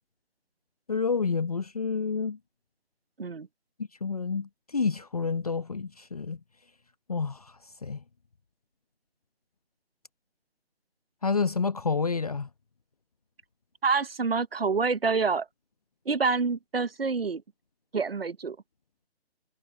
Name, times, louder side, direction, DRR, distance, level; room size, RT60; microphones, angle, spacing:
voice 1, 0.9-2.4 4.0-6.4 7.1-8.0 11.2-12.5, left 5 dB, 35° left, 1.0 m, -29 dB
voice 2, 13.8-15.5 16.1-17.4 17.9-18.6, right 4 dB, 60° right, 0.9 m, -27 dB
figure-of-eight pair, 160°, 33 cm